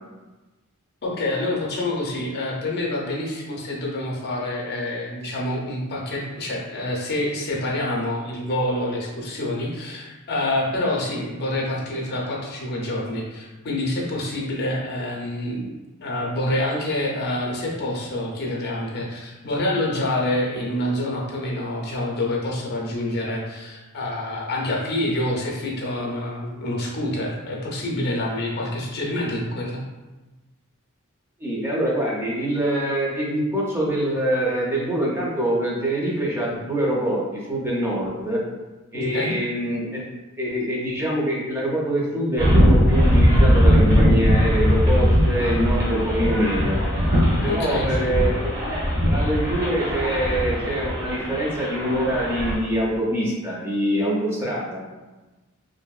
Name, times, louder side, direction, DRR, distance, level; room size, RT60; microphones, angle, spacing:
voice 1, 1.0-15.7 16.0-29.8 38.9-39.4 47.5-48.0, left 1 dB, 45° left, -2 dB, 0.5 m, -27 dB
voice 2, 31.4-38.4 38.9-40.0 40.4-46.7 47.4-48.5 49.1-54.8, right 1 dB, 10° right, -5 dB, 0.5 m, -24 dB
sound 1, 42.4-52.5, equal, 45° right, 0.9 m, -20 dB
2.9 x 2.6 x 2.3 m, 1.1 s
head